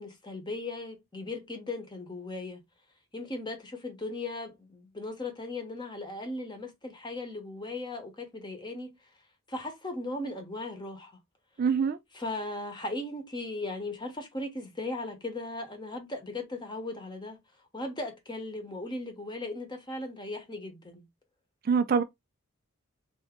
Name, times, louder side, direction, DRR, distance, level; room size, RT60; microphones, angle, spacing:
voice 1, 0.0-2.6 3.1-9.0 9.5-11.1 12.1-17.4 17.7-21.1, left 2 dB, 20° left, 0.9 m, -37 dB
voice 2, 11.6-12.0 21.7-22.0, right 6 dB, 45° right, 0.3 m, -24 dB
3.4 x 2.6 x 3.5 m
head